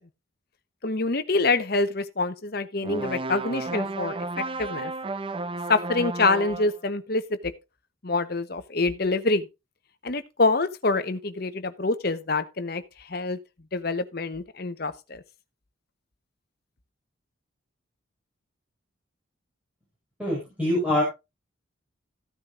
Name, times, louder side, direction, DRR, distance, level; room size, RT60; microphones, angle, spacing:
voice 1, 0.8-4.2 4.6-4.9 5.7-7.5 8.0-9.5 10.0-13.4 13.7-15.2, left 3 dB, 50° left, 0.9 m, -26 dB
sound 1, 2.8-6.8, right 2 dB, 25° right, 0.6 m, -32 dB
voice 2, 20.2-21.0, left 1 dB, 5° right, 5.1 m, -24 dB
15.0 x 9.4 x 2.5 m
head